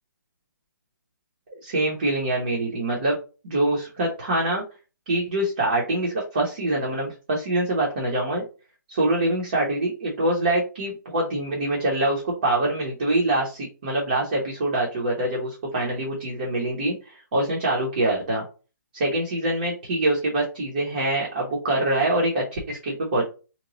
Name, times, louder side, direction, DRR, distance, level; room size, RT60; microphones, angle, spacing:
voice 1, 1.6-3.2 3.4-4.6 5.1-8.4 8.9-18.4 18.9-23.3, right 1 dB, 30° right, -2 dB, 0.8 m, -24 dB
3.0 x 2.2 x 3.8 m, 0.33 s
hypercardioid pair, 175°, 10 cm